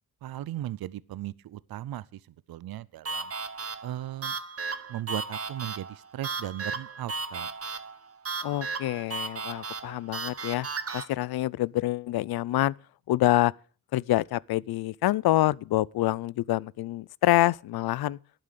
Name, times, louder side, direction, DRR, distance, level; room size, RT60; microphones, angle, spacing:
voice 1, 0.2-3.3 3.8-4.4 4.9-7.5, right 13 dB, 75° right, 0.6 m, -37 dB
sound 1, 3.0-11.1, right 4 dB, 40° right, 1.2 m, -35 dB
voice 2, 8.4-10.7 10.9-12.7 13.1-13.5 13.9-18.2, left 15 dB, 85° left, 0.5 m, -26 dB
11.5 x 9.1 x 6.6 m
cardioid pair, 90°, 36 cm